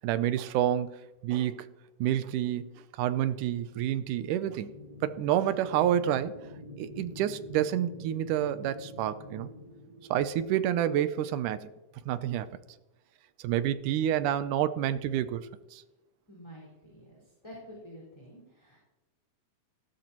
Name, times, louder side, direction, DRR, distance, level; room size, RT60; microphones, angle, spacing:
voice 1, 0.0-1.0 1.2-1.7 2.0-4.7 5.0-6.3 6.8-9.5 10.1-11.7 12.1-12.5 13.4-15.8, right 11 dB, 75° right, 12 dB, 2.1 m, -28 dB
sound 1, 4.1-11.1, left 1 dB, 10° right, 2.9 m, -48 dB
voice 2, 16.3-18.8, equal, 10° left, -4 dB, 4.8 m, -49 dB
19.0 x 16.0 x 3.0 m, 1.1 s
omnidirectional pair, 3.9 m